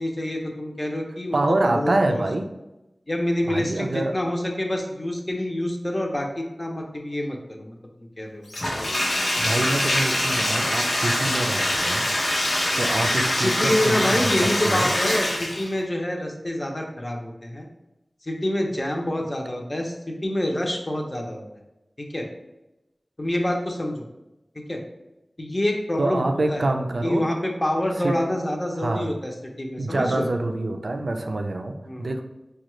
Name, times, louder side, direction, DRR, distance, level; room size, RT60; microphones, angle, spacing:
voice 1, 0.0-2.2 3.1-8.4 8.8-8.9 13.4-17.7 18.2-21.4 22.0-22.2 23.2-24.0 24.7-24.8 25.4-26.2 26.5-26.6 27.0-29.3 29.6-30.3 31.9-32.1, left 1 dB, 30° left, 1 dB, 0.6 m, -27 dB
voice 2, 1.3-2.5 3.5-4.3 9.4-12.1 12.8-14.9 26.0-27.3 28.0-28.2 28.7-29.1 29.8-32.2, right 2 dB, 70° right, 5 dB, 0.4 m, -26 dB
Bathtub (filling or washing), 8.5-15.8, left 1 dB, 85° left, 0.9 m, -24 dB
5.1 x 2.3 x 3.0 m, 0.98 s
wide cardioid pair, 60°, 0 cm